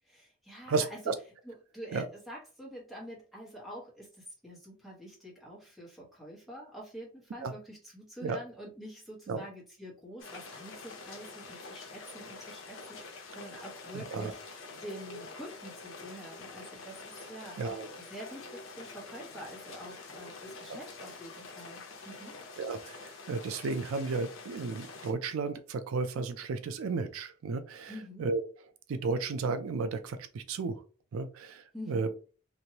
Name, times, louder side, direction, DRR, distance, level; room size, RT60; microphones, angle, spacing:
voice 1, 0.1-1.1 1.4-17.8 18.1-22.4 27.9-28.3 31.7-32.1, equal, ahead, -5 dB, 1.3 m, -46 dB
voice 2, 0.7-1.1 1.9-2.1 7.4-7.5 8.2-8.4 9.3-9.4 13.9-14.3 17.6-17.9 20.7-20.8 22.6-23.0 23.3-27.9 28.2-28.4 28.9-30.8 31.1-31.6 31.9-32.1, right 4 dB, 75° right, 9 dB, 0.4 m, -33 dB
sound 1, 10.2-25.1, left 3 dB, 70° left, 0.7 m, -47 dB
3.0 x 2.5 x 2.8 m, 0.37 s
head